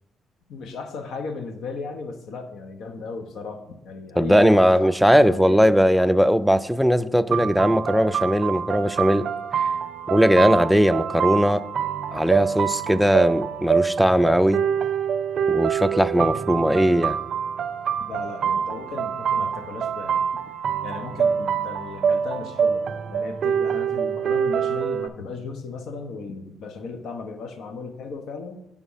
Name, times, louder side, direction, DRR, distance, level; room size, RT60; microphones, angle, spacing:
voice 1, 0.5-5.7 18.1-20.2 20.8-28.6, left 4 dB, 75° left, 7 dB, 0.9 m, -36 dB
voice 2, 4.2-9.3 9.5-9.6 10.1-11.6 12.1-14.6 15.5-17.2, equal, ahead, 13 dB, 0.3 m, -19 dB
sound 1, 7.3-25.1, right 7 dB, 60° right, 0.5 m, -25 dB
8.4 x 3.6 x 5.5 m, 0.87 s
cardioid pair, 90°, 0 cm